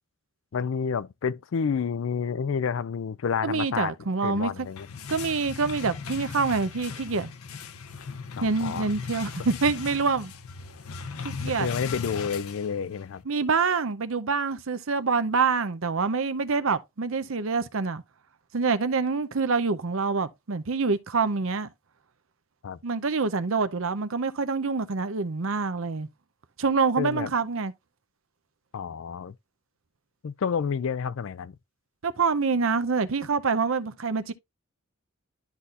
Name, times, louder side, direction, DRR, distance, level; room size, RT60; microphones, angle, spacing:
voice 1, 0.5-3.9 4.2-4.9 8.4-8.9 11.6-13.2 22.6-22.8 27.0-27.3 28.7-29.3 30.2-31.6, left 6 dB, 65° left, 0.4 m, -29 dB
voice 2, 3.4-4.7 5.1-7.3 8.4-10.3 11.2-11.7 13.3-18.0 18.5-21.7 22.8-26.1 26.6-27.7 32.0-34.3, right 4 dB, 70° right, 0.7 m, -26 dB
sound 1, 4.5-13.2, left 5 dB, 85° left, 0.7 m, -38 dB
12.0 x 4.1 x 2.4 m
head